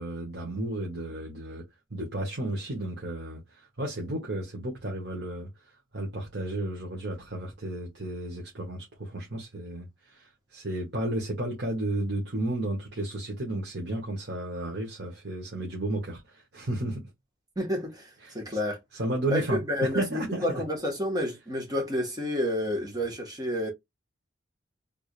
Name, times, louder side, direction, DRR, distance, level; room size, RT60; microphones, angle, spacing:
voice 1, 0.0-5.5 5.9-17.1 18.2-18.6 18.9-20.6, right 1 dB, 60° right, 1.3 m, -33 dB
voice 2, 17.5-18.8 19.3-23.7, left 1 dB, 20° right, 1.5 m, -30 dB
3.6 x 3.3 x 2.4 m
head